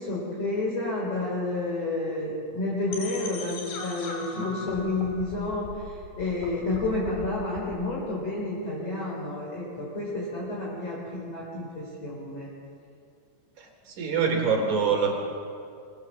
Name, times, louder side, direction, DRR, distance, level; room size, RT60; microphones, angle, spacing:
voice 1, 0.0-12.5, left 2 dB, 35° left, -4 dB, 4.8 m, -30 dB
sound 1, 2.9-7.9, left 3 dB, 60° left, 5.2 m, -39 dB
voice 2, 13.6-15.1, right 5 dB, 40° right, 2 dB, 4.5 m, -25 dB
25.0 x 21.5 x 7.5 m, 2.3 s
omnidirectional pair, 5.5 m